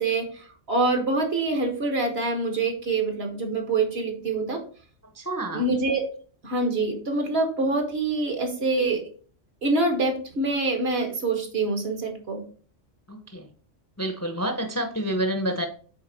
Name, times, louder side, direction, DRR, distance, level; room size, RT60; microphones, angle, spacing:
voice 1, 0.0-4.6 5.5-6.0 6.4-9.0 9.6-12.4, right 3 dB, 55° right, 4 dB, 1.6 m, -25 dB
voice 2, 5.1-5.6 13.1-13.5 14.0-15.7, right 1 dB, 15° left, 5 dB, 0.6 m, -28 dB
7.9 x 3.7 x 4.1 m, 0.42 s
omnidirectional pair, 1.3 m